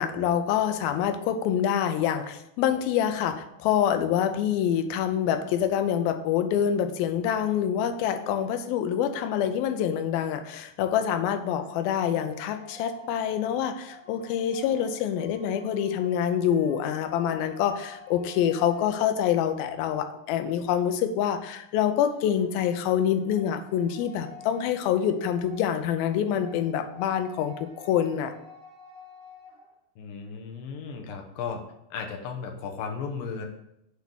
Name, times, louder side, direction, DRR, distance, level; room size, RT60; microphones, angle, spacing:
voice 1, 0.0-28.3, left 9 dB, 90° left, 8 dB, 2.5 m, -26 dB
sound 1, 11.2-19.7 22.0-29.7, left 1 dB, 5° right, 1.0 m, -50 dB
voice 2, 30.0-31.6 31.9-33.5, left 5 dB, 75° left, 3 dB, 2.5 m, -35 dB
8.1 x 3.5 x 6.2 m, 0.82 s
omnidirectional pair, 4.2 m